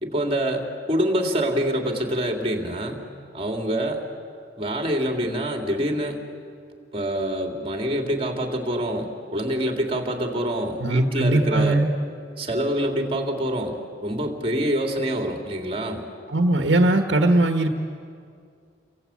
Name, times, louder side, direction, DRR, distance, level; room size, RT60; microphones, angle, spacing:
voice 1, 0.0-3.0 3.3-4.0 4.6-6.2 6.9-11.8 12.4-16.0, equal, 30° right, 3 dB, 3.2 m, -26 dB
voice 2, 10.8-11.9 16.3-17.7, right 2 dB, 80° right, 5 dB, 1.4 m, -20 dB
30.0 x 22.5 x 8.6 m, 2.3 s
head